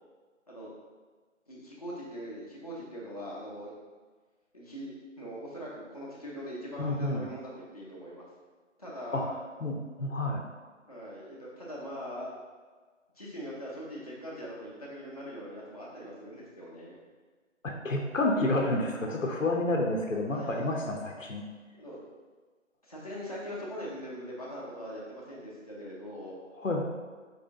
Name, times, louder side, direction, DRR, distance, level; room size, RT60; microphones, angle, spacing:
voice 1, 1.5-3.7 4.5-8.2 8.8-9.3 10.9-12.3 13.2-17.0 20.3-21.0 21.7-22.0 22.8-26.4, equal, 30° left, -6 dB, 0.7 m, -41 dB
voice 2, 6.8-7.2 9.1-9.2 9.6-10.4 17.6-21.4 26.6-26.8, left 2 dB, 85° left, 1 dB, 0.9 m, -29 dB
4.8 x 2.7 x 3.6 m, 1.4 s
figure-of-eight pair, 165°, 38 cm